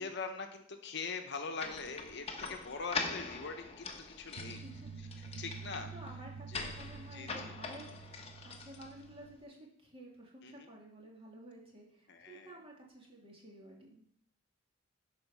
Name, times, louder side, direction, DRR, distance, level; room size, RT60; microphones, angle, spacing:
voice 1, 0.0-4.7 5.0-5.9 6.5-6.7 7.1-7.6 10.4-10.7 12.1-12.6, left 4 dB, 55° left, 6 dB, 0.9 m, -43 dB
sound 1, 1.6-9.2, left 4 dB, 30° left, 1.0 m, -43 dB
voice 2, 4.4-5.0 5.4-14.1, right 1 dB, 25° right, -2 dB, 2.3 m, -53 dB
sound 2, 4.4-9.4, right 5 dB, 65° right, 0.6 m, -48 dB
11.0 x 4.3 x 5.6 m, 0.65 s
head